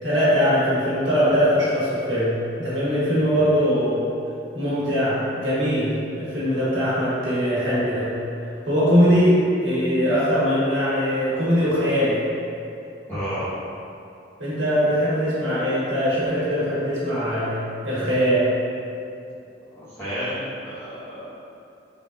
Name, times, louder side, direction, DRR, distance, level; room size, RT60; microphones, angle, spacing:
voice 1, 0.0-4.0 4.5-8.1 8.7-12.2 14.4-18.4, equal, 80° right, -9 dB, 1.2 m, -21 dB
voice 2, 13.1-13.5 19.7-21.3, equal, 15° left, -14 dB, 1.2 m, -31 dB
3.6 x 3.3 x 2.5 m, 2.6 s
head